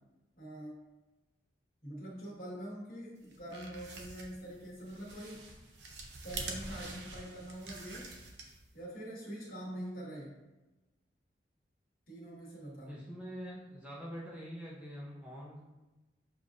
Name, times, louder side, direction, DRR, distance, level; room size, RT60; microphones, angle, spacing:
voice 1, 0.4-0.8 1.8-5.5 6.2-8.1 8.7-10.3 12.1-13.0, equal, 50° left, -6 dB, 1.4 m, -44 dB
sound 1, 3.2-8.8, right 3 dB, 75° right, 0.6 m, -46 dB
voice 2, 12.9-15.6, equal, 5° right, -6 dB, 0.5 m, -45 dB
6.9 x 2.5 x 2.5 m, 1.1 s
head